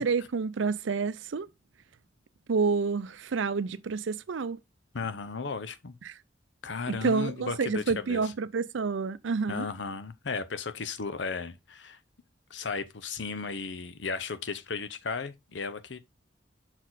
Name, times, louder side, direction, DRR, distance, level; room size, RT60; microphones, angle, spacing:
voice 1, 0.0-1.5 2.5-4.6 6.9-9.7, right 5 dB, 75° right, 0.5 m, -29 dB
voice 2, 4.9-5.9 6.6-8.3 9.5-12.0 12.5-16.0, left 4 dB, 65° left, 0.7 m, -35 dB
6.2 x 4.2 x 4.0 m
head